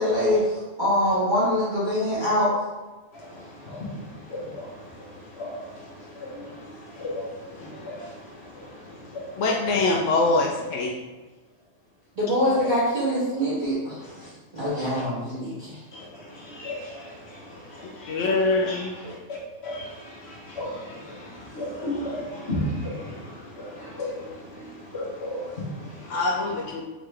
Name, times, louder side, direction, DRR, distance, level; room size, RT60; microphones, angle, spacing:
voice 1, 0.0-2.5 12.2-14.0 14.5-15.8, equal, 40° right, -12 dB, 1.4 m, -24 dB
voice 2, 3.1-10.4 14.2-14.3 15.9-19.2 19.6-26.6, left 1 dB, 60° left, -4 dB, 1.2 m, -36 dB
voice 3, 9.4-10.9 18.1-18.9 26.1-26.8, left 3 dB, 80° left, 0 dB, 0.9 m, -23 dB
3.8 x 3.6 x 3.2 m, 1.2 s
omnidirectional pair, 1.3 m